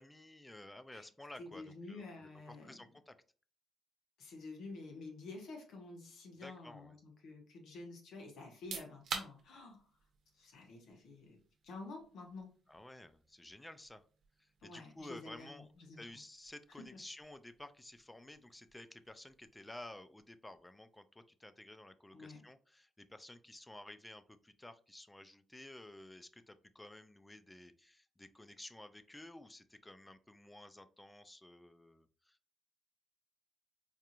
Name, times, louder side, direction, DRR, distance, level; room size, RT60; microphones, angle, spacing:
voice 1, 0.0-2.0 2.5-3.2 6.4-7.0 12.7-14.0 14.4-15.7 16.0-32.6, left 1 dB, 10° left, 11 dB, 0.3 m, -53 dB
voice 2, 1.4-2.8 4.2-9.9 10.3-11.4 11.6-12.5 14.6-16.0 16.8-16.9 22.1-22.4, left 3 dB, 65° left, 2 dB, 1.1 m, -50 dB
sound 1, 8.5-21.1, right 5 dB, 55° right, 0.9 m, -52 dB
4.6 x 2.5 x 2.8 m, 0.40 s
cardioid pair, 145°, 0 cm